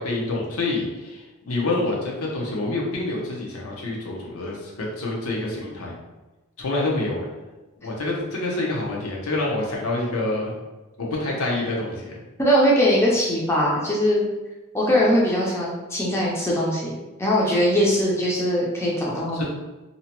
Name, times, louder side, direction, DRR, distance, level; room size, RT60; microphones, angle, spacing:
voice 1, 0.0-6.0 6.6-7.2 7.8-10.6 11.0-12.1 19.3-19.4, left 2 dB, 90° left, -2 dB, 0.7 m, -27 dB
voice 2, 12.4-14.2 14.7-16.9 17.2-19.4, equal, 10° left, -5 dB, 0.4 m, -21 dB
2.7 x 2.1 x 2.8 m, 1.1 s
head